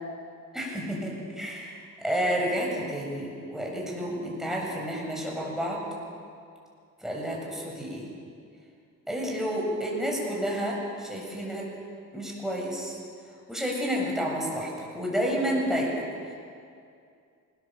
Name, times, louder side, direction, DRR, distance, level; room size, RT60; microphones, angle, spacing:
voice 1, 0.5-5.8 7.0-8.1 9.1-11.7 12.1-13.0 13.5-16.1, equal, ahead, -3 dB, 7.5 m, -30 dB
25.5 x 19.5 x 7.6 m, 2.4 s
cardioid pair, 100°, 33 cm